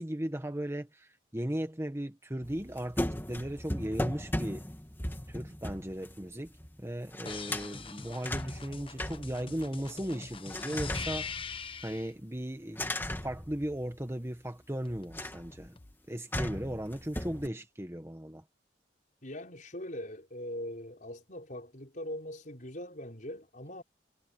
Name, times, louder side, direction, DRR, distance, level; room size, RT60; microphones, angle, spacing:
voice 1, 0.0-3.0 3.3-4.7 5.3-6.5 6.8-11.3 11.8-13.0 13.2-15.8 16.1-18.4, right 1 dB, 15° right, 1.5 m, -37 dB
sound 1, 2.4-6.8 7.1-7.7 8.1-10.0 10.5-12.0 12.7-14.2 15.1-15.6 16.3-17.5, left 1 dB, 10° left, 2.4 m, -37 dB
sound 2, 7.3-12.1 14.9-15.9, left 5 dB, 30° left, 1.0 m, -43 dB
voice 2, 19.2-23.8, left 1 dB, 45° left, 6.0 m, -41 dB
head